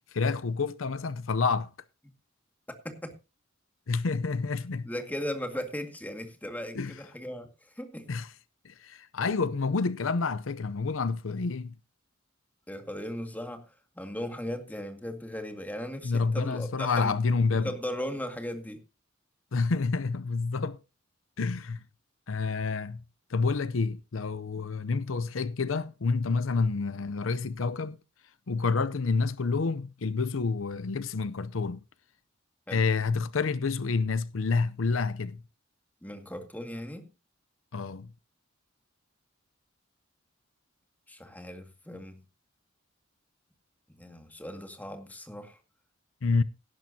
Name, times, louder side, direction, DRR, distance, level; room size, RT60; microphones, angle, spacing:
voice 1, 0.1-1.7 3.9-4.9 6.7-6.9 8.1-8.3 8.6-11.7 16.0-17.7 19.5-20.8 21.4-21.8 22.3-23.0 23.3-28.0 28.5-31.8 32.7-35.4 37.7-38.1 46.2-46.4, left 4 dB, 90° left, 0.7 m, -28 dB
voice 2, 4.8-7.5 7.8-8.1 12.7-13.7 14.0-17.1 17.5-18.8 32.7-32.8 36.0-37.1 41.1-42.2 44.0-45.6, equal, 10° left, 2.0 m, -37 dB
17.0 x 10.5 x 2.8 m
head